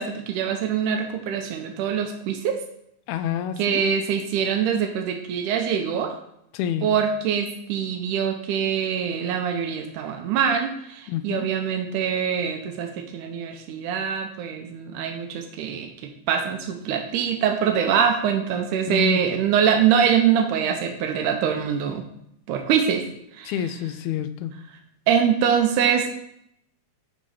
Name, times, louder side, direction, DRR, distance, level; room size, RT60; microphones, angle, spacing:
voice 1, 0.0-2.6 3.6-6.2 6.8-15.9 16.3-22.0 22.5-23.0 23.4-23.5 25.1-26.1, right 8 dB, 90° right, 5 dB, 2.3 m, -24 dB
voice 2, 3.1-3.9 6.5-6.9 11.1-11.5 18.9-19.2 23.5-24.5, left 9 dB, 80° left, 11 dB, 1.9 m, -28 dB
11.5 x 3.9 x 4.9 m, 0.74 s
omnidirectional pair, 3.5 m